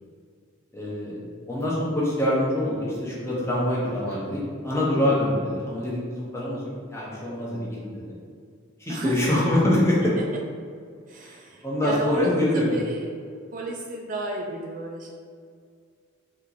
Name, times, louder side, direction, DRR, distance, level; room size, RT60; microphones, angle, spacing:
voice 1, 0.7-1.2 1.5-6.6 6.9-8.1 8.8-10.1 11.2-11.3 11.6-12.7, left 1 dB, 15° left, -6 dB, 0.9 m, -25 dB
voice 2, 8.9-9.3 11.1-13.1 13.5-15.1, right 2 dB, 40° right, 0 dB, 0.4 m, -33 dB
4.1 x 3.0 x 4.0 m, 2.2 s
head